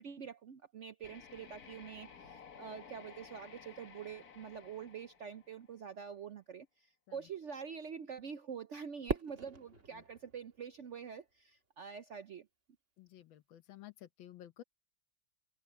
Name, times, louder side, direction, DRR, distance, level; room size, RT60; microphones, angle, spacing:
voice 1, 0.0-12.5, right 7 dB, 80° right, 0.6 m, -46 dB
sound 1, 1.0-5.9, left 6 dB, 50° left, 1.9 m, -55 dB
Fireworks, 9.1-11.4, right 6 dB, 40° right, 1.9 m, -41 dB
voice 2, 13.0-14.6, left 13 dB, 75° left, 1.7 m, -53 dB
omnidirectional pair, 2.2 m